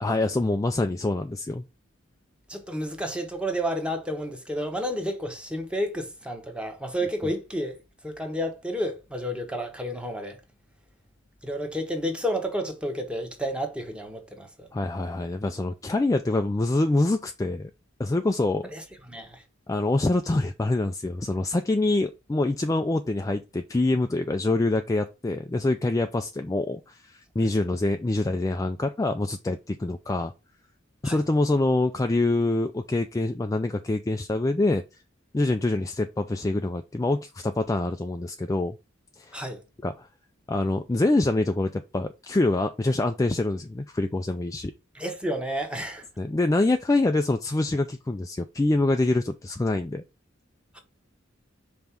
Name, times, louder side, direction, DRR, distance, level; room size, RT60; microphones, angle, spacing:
voice 1, 0.0-1.7 14.7-17.7 18.0-18.7 19.7-30.3 31.0-34.8 35.3-38.8 39.2-39.4 39.8-40.1 40.5-44.7 46.2-50.0, left 2 dB, 15° left, 0.4 m, -25 dB
voice 2, 2.5-7.8 8.0-10.4 11.4-14.7 18.7-19.4 31.0-31.2 39.3-39.6 44.9-46.0 50.7-50.8, equal, 5° right, 1.2 m, -31 dB
5.4 x 3.5 x 5.7 m
head